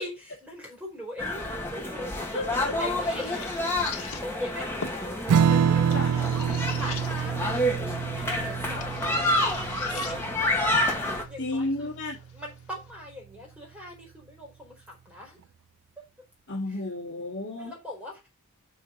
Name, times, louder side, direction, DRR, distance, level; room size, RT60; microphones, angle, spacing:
voice 1, 0.0-3.5 3.9-10.7 11.0-11.9 12.3-15.4 16.0-16.1 17.6-18.3, left 1 dB, 5° right, 4.6 m, -41 dB
sound 1, 1.2-11.2, left 1 dB, 10° left, 2.2 m, -29 dB
voice 2, 2.3-2.8 5.5-5.7 5.9-6.2 8.7-8.8 11.4-12.2 16.5-17.7, left 2 dB, 55° left, 2.7 m, -32 dB
sound 2, 2.6-12.9, left 6 dB, 75° left, 1.7 m, -44 dB
Strum, 5.3-12.1, right 7 dB, 85° right, 0.4 m, -27 dB
6.9 x 5.9 x 5.4 m
head